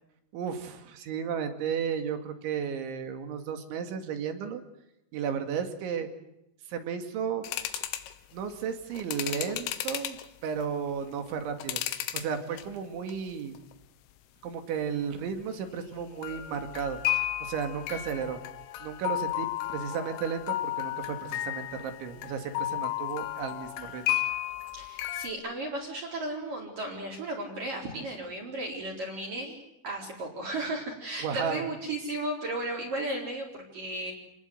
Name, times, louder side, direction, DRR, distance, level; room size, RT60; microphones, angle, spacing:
voice 1, 0.3-4.6 5.1-6.1 6.7-7.5 8.3-10.2 10.4-11.8 12.1-13.6 14.4-17.0 17.4-18.4 18.8-24.2 31.2-31.7, right 7 dB, 70° right, 7 dB, 4.4 m, -33 dB
sound 1, 7.4-8.1 8.9-10.3 10.9-12.3 12.6-13.1 13.6-13.7 16.2-25.3, left 14 dB, 80° left, 3.9 m, -33 dB
voice 2, 24.7-29.6 29.8-34.1, right 1 dB, 45° right, -2 dB, 5.5 m, -35 dB
29.5 x 20.0 x 8.0 m, 0.87 s
omnidirectional pair, 5.8 m